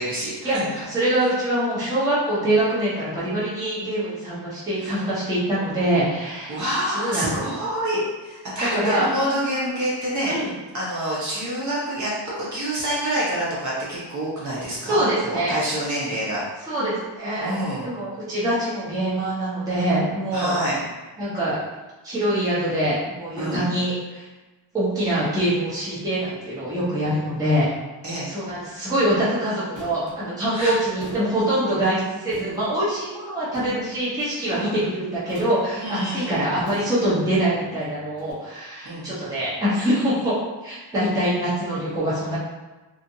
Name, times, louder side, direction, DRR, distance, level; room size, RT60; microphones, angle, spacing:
voice 1, 0.0-0.8 4.8-5.1 6.5-10.3 10.7-16.7 17.4-17.9 20.3-20.8 23.4-23.6 28.0-28.3 30.5-30.7 34.5-34.9 35.7-36.5 38.8-39.1, right 1 dB, 40° right, -7 dB, 0.8 m, -27 dB
voice 2, 0.9-6.6 6.9-7.3 8.7-9.1 10.3-10.5 14.8-15.5 16.7-17.5 17.8-20.5 21.2-21.6 22.0-24.2 24.7-27.7 28.3-40.3 40.6-42.4, right 1 dB, 10° right, -10 dB, 0.7 m, -24 dB
sound 1, 28.8-28.9 29.7-30.1 31.0-31.4 32.3-32.7 33.5-34.0 35.3-35.7 36.7-37.2 38.2-38.3, equal, 65° right, 1.4 m, -42 dB
2.6 x 2.4 x 2.7 m, 1.2 s
wide cardioid pair, 160°, 46 cm